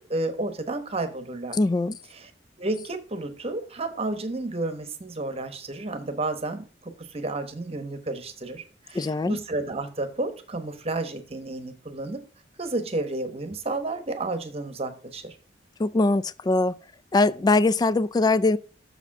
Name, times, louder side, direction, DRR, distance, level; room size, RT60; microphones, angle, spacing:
voice 1, 0.0-1.6 2.1-2.3 2.6-12.3 12.6-15.4, right 2 dB, 35° right, 1.0 m, -31 dB
voice 2, 1.5-2.0 8.9-9.4 15.8-16.8 17.1-18.6, left 3 dB, 20° left, 0.3 m, -22 dB
6.6 x 5.0 x 5.9 m
head